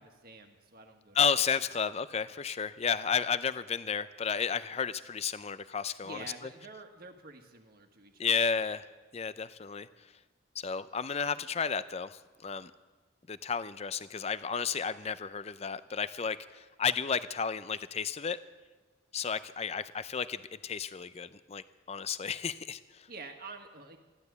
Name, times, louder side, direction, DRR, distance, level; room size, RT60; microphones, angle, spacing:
voice 1, 0.0-1.2 6.0-8.4 23.1-24.0, right 3 dB, 50° right, 5 dB, 1.5 m, -48 dB
voice 2, 1.1-6.2 8.2-8.9 9.1-9.9 10.6-12.7 13.3-18.4 19.1-23.1, left 6 dB, 30° left, 14 dB, 0.5 m, -32 dB
13.5 x 12.0 x 8.1 m, 1.3 s
head